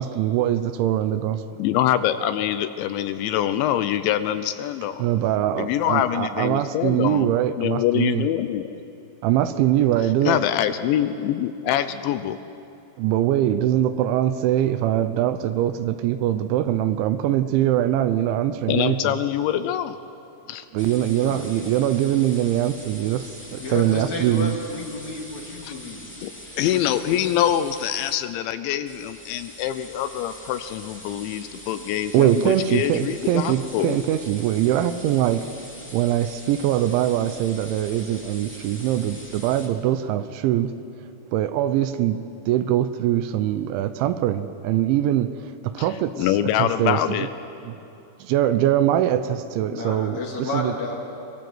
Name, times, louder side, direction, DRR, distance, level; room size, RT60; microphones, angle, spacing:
voice 1, 0.0-1.4 5.0-8.3 9.2-10.4 13.0-19.1 20.7-24.6 32.1-35.5 35.9-40.7 41.3-45.3 45.6-46.3 46.6-47.0 47.7-47.8 48.2-50.7, right 12 dB, 80° right, 12 dB, 3.0 m, -22 dB
voice 2, 1.6-5.1 5.6-8.8 10.2-12.4 18.7-20.0 20.5-20.7 25.6-25.7 26.2-26.3 26.6-34.0 45.8-47.3, left 11 dB, 80° left, 11 dB, 2.9 m, -24 dB
sound 1, 20.8-28.2 28.9-39.7, equal, 5° left, 1.6 m, -43 dB
voice 3, 23.6-26.1 26.5-26.7 49.7-51.0, left 2 dB, 45° left, 0 dB, 3.0 m, -31 dB
25.5 x 22.5 x 7.9 m, 2.8 s
omnidirectional pair, 5.5 m